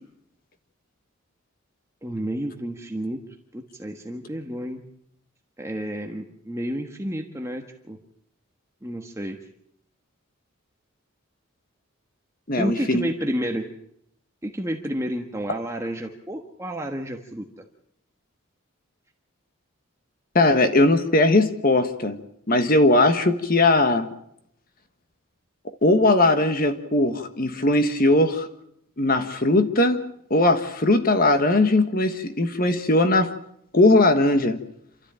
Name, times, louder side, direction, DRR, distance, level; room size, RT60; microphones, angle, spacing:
voice 1, 2.0-3.2 3.5-4.8 5.6-8.0 8.8-9.4 12.6-13.6 14.4-17.5, equal, 15° right, 2 dB, 1.4 m, -30 dB
voice 2, 12.5-13.1 20.3-22.2 22.5-24.1 25.8-28.5 29.0-30.0 30.3-33.3 33.7-34.6, left 2 dB, 40° left, 8 dB, 1.4 m, -19 dB
28.0 x 13.5 x 8.9 m, 0.74 s
head